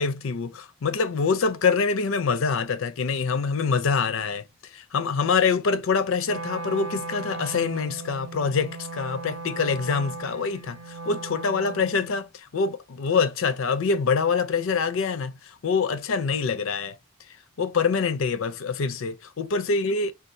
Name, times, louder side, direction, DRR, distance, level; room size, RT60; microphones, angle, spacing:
voice 1, 0.0-17.0 17.6-20.1, left 5 dB, 80° left, 0.5 m, -25 dB
Wind instrument woodwind instrument, 6.2-12.2, right 3 dB, 85° right, 0.7 m, -37 dB
4.4 x 2.3 x 2.6 m
head